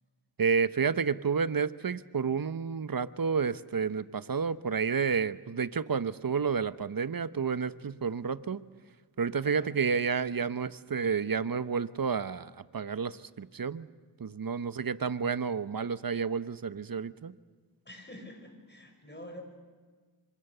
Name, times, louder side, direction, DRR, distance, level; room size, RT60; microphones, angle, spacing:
voice 1, 0.4-8.6 9.2-13.9 14.2-17.3, right 6 dB, 50° right, 15 dB, 0.9 m, -30 dB
voice 2, 9.4-9.8 17.8-19.4, left 1 dB, 25° left, 4 dB, 6.3 m, -47 dB
26.0 x 26.0 x 6.8 m, 1.5 s
cardioid pair, 50°, 45 cm